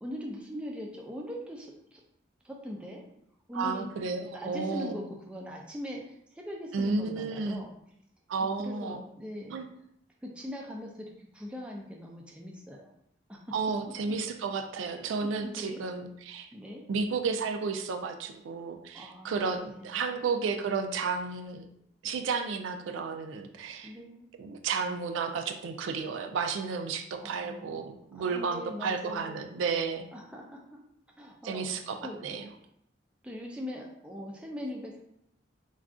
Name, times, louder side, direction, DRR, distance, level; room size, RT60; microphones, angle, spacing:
voice 1, 0.0-2.0 2.4-3.0 3.5-3.9 4.2-7.7 8.4-9.6 10.2-12.9 13.3-13.4 15.2-15.8 16.5-16.8 18.9-19.4 19.8-20.2 23.8-24.3 27.2-27.9 28.1-29.5 30.1-30.6 31.2-32.4 33.2-35.0, equal, 5° right, -1 dB, 0.3 m, -41 dB
voice 2, 3.5-4.9 6.7-7.6 8.3-9.0 9.5-9.7 13.5-16.5 16.9-21.7 22.0-23.9 24.4-30.1 31.4-32.0 32.2-32.4, right 5 dB, 85° right, 6 dB, 0.3 m, -32 dB
2.4 x 2.3 x 3.5 m, 0.75 s
head